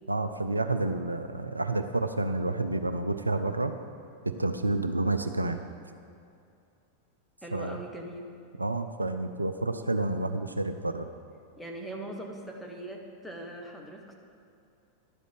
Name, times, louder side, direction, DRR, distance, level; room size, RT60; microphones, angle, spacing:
voice 1, 0.1-3.7 4.4-5.6 7.5-7.8 8.6-11.1, right 2 dB, 80° right, 8 dB, 0.4 m, -29 dB
voice 2, 7.4-8.3 11.6-14.1, right 1 dB, 5° left, 0 dB, 1.2 m, -41 dB
11.5 x 5.1 x 6.0 m, 2.5 s
figure-of-eight pair, 90°, 0 cm